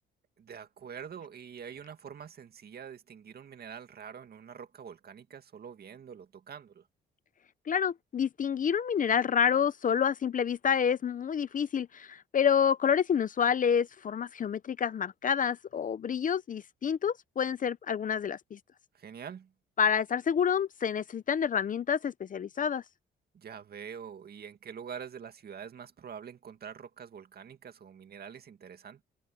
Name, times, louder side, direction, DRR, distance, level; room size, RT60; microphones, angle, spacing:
voice 1, 0.4-6.9 18.9-19.5 23.3-29.0, right 7 dB, 55° right, 2.1 m, -45 dB
voice 2, 7.7-18.6 19.8-22.8, left 7 dB, 40° left, 0.7 m, -28 dB
cardioid pair, 90°, 20 cm